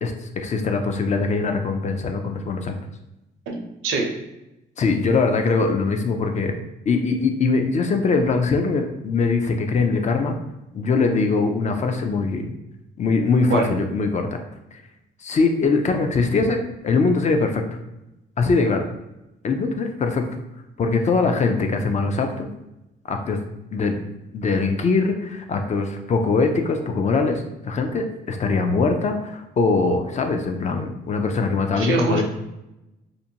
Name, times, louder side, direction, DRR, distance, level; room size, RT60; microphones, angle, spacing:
voice 1, 0.0-2.7 4.8-6.5 6.9-10.4 10.7-12.5 13.0-14.3 14.7-14.8 15.2-17.6 18.4-18.8 19.4-20.3 20.8-22.5 23.1-23.4 23.7-24.0 24.3-32.2, left 4 dB, 35° left, 5 dB, 0.4 m, -22 dB
voice 2, 3.5-4.1 13.5-13.6 31.8-32.2, right 4 dB, 80° right, 1 dB, 0.6 m, -23 dB
2.5 x 2.1 x 2.7 m, 0.94 s
cardioid pair, 90°, 20 cm